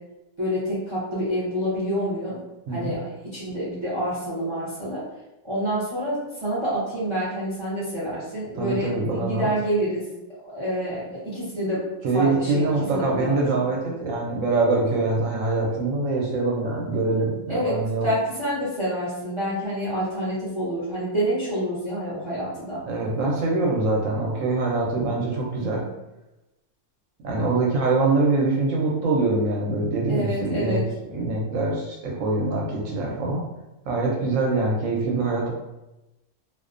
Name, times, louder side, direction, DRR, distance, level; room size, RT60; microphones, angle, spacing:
voice 1, 0.4-2.4 2.7-5.0 5.4-10.0 10.4-11.8 12.1-13.7 17.5-22.8 30.1-30.8, equal, 50° right, -8 dB, 0.3 m, -28 dB
voice 2, 2.7-3.0 8.6-9.5 12.0-18.1 22.9-25.9 27.2-30.8 31.1-33.4 33.9-35.5, right 3 dB, 70° right, -2 dB, 0.9 m, -24 dB
2.4 x 2.1 x 2.4 m, 0.99 s
omnidirectional pair, 1.5 m